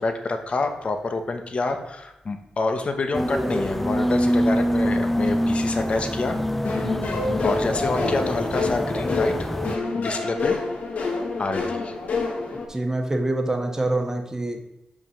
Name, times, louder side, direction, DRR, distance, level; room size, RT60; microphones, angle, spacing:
voice 1, 0.0-6.4 6.7-7.0 7.4-9.5 9.9-10.6 11.4-11.9, left 3 dB, 50° left, 6 dB, 1.2 m, -27 dB
sound 1, 3.1-9.8, equal, 5° left, 0.5 m, -25 dB
sound 2, 6.6-12.6, left 3 dB, 70° left, 1.6 m, -27 dB
voice 2, 12.7-14.6, right 2 dB, 20° right, 4 dB, 1.4 m, -26 dB
5.6 x 5.4 x 6.4 m, 0.92 s
cardioid pair, 80°, 3 cm